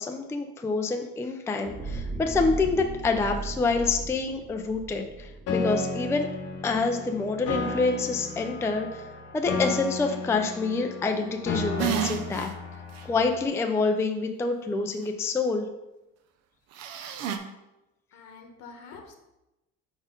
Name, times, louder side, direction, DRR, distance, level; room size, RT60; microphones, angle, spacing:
voice 1, 0.0-6.3 6.6-9.1 9.3-12.5 13.0-15.7, left 4 dB, 10° left, 4 dB, 0.4 m, -27 dB
sound 1, 1.6-6.1 6.6-6.8, right 3 dB, 15° right, 1.7 m, -37 dB
Piano, 5.5-13.5, left 3 dB, 55° left, 1.0 m, -33 dB
sound 2, 11.8-12.5 13.0-13.1 16.8-17.4, right 9 dB, 60° right, 0.7 m, -30 dB
voice 2, 18.1-19.2, left 4 dB, 80° left, 4 dB, 1.1 m, -46 dB
5.0 x 4.2 x 5.1 m, 0.95 s
cardioid pair, 135°, 29 cm